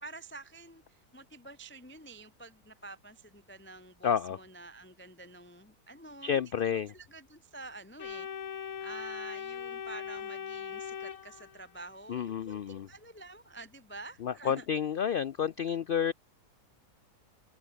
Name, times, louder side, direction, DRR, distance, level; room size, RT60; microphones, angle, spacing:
voice 1, 0.0-6.4 6.9-8.3 8.8-14.7, right 2 dB, 10° left, 0.6 m, -48 dB
voice 2, 4.0-4.4 6.2-6.9 12.1-12.9 14.2-16.1, left 8 dB, 85° left, 0.4 m, -30 dB
Organ, 8.0-11.9, left 8 dB, 70° left, 1.8 m, -40 dB
open air
omnidirectional pair, 1.6 m